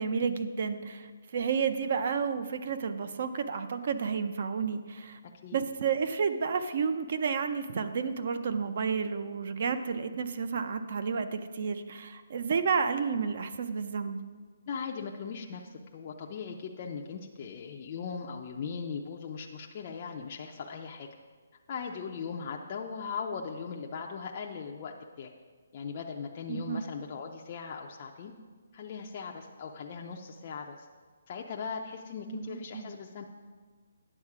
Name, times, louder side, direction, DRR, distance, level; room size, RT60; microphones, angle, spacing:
voice 1, 0.0-5.2 5.5-14.2 26.5-26.8 32.3-32.9, right 6 dB, 40° right, 9 dB, 0.5 m, -31 dB
voice 2, 14.7-21.1 21.7-25.3 25.7-28.3 28.7-30.8 31.3-33.2, left 6 dB, 30° left, 1 dB, 0.5 m, -39 dB
9.8 x 7.3 x 4.8 m, 1.5 s
hypercardioid pair, 175°, 0 cm